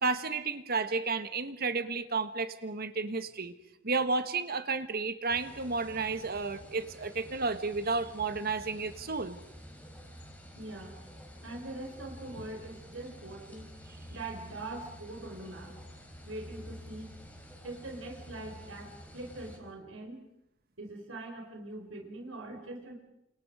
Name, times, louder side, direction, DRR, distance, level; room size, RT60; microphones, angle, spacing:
voice 1, 0.0-3.5 3.8-9.4, right 4 dB, 50° right, 10 dB, 1.5 m, -32 dB
sound 1, 5.3-19.6, equal, 10° left, 4.7 m, -49 dB
voice 2, 10.6-11.0 11.4-13.7 14.1-15.8 16.2-17.1 17.6-20.2 20.8-22.9, right 2 dB, 80° right, 2 dB, 4.7 m, -42 dB
30.0 x 28.0 x 5.0 m, 0.83 s
head